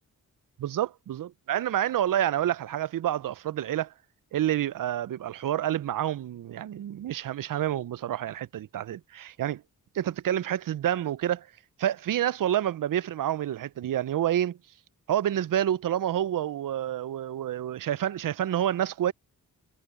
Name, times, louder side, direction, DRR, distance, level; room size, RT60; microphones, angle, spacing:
voice 1, 0.6-3.9 4.3-9.6 9.9-11.5 11.8-14.6 15.1-19.1, right 11 dB, 60° right, 0.6 m, -28 dB
cardioid pair, 55°, 36 cm